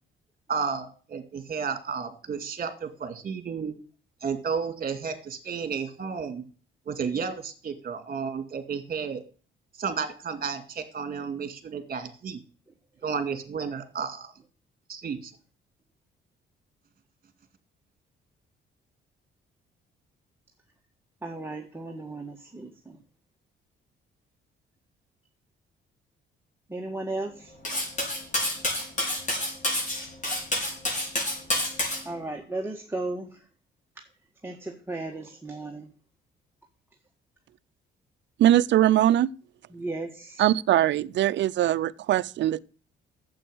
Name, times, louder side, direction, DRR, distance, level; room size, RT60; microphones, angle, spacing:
voice 1, 0.5-3.7 4.2-6.4 6.9-9.2 9.8-12.4 13.0-14.3 14.9-15.3, right 6 dB, 45° right, 2.2 m, -32 dB
voice 2, 21.2-23.0 26.7-27.5 31.7-31.8 32.1-33.4 34.4-35.9 39.7-40.4, right 2 dB, 10° right, 1.7 m, -35 dB
Cutlery silverware, 27.6-32.0, left 1 dB, 40° left, 5.7 m, -28 dB
voice 3, 38.4-39.3 40.4-42.6, right 13 dB, 65° right, 0.5 m, -21 dB
9.0 x 7.9 x 7.8 m
cardioid pair, 90°, 20 cm